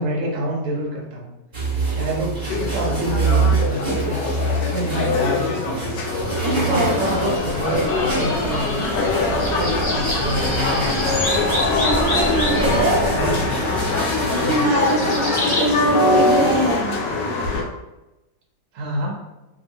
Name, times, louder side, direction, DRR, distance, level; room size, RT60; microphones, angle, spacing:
voice 1, 0.0-1.3 1.9-5.9 6.6-8.9 9.2-11.2 12.3-14.0 14.4-14.7 18.7-19.2, right 1 dB, 60° right, -2 dB, 0.9 m, -28 dB
sound 1, 1.5-16.8, right 3 dB, 30° right, 1.1 m, -27 dB
sound 2, 2.5-17.6, left 3 dB, 75° left, 1.2 m, -23 dB
sound 3, 6.0-15.7, left 1 dB, 40° left, 0.6 m, -28 dB
voice 2, 6.4-7.1 11.8-13.0 14.3-16.9, right 2 dB, 75° right, 0 dB, 1.2 m, -23 dB
2.8 x 2.7 x 2.7 m, 1.0 s
omnidirectional pair, 2.0 m